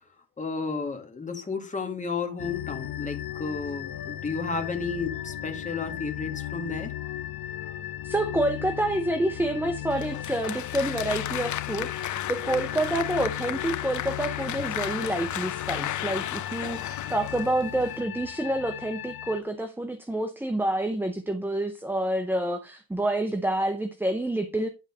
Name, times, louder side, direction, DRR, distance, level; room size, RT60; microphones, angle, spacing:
voice 1, 0.4-6.9, left 4 dB, 20° left, 1.9 m, -32 dB
sound 1, 2.4-19.4, left 12 dB, 65° left, 0.9 m, -36 dB
voice 2, 8.0-24.7, right 1 dB, 5° right, 0.7 m, -28 dB
Applause, 9.9-18.0, left 13 dB, 50° left, 0.5 m, -34 dB
11.0 x 4.0 x 5.3 m
cardioid pair, 145°, 38 cm